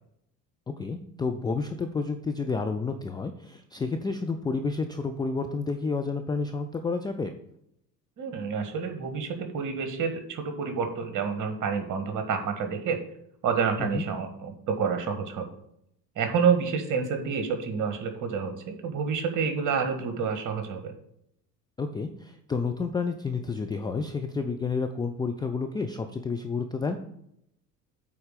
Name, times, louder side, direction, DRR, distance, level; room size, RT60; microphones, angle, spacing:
voice 1, 0.7-7.3 13.8-14.0 21.8-27.0, left 4 dB, 10° left, 5 dB, 0.4 m, -30 dB
voice 2, 8.2-13.0 13.4-15.5 16.1-20.9, right 6 dB, 40° right, 7 dB, 1.7 m, -28 dB
8.6 x 4.1 x 6.6 m, 0.75 s
figure-of-eight pair, 70°, 48 cm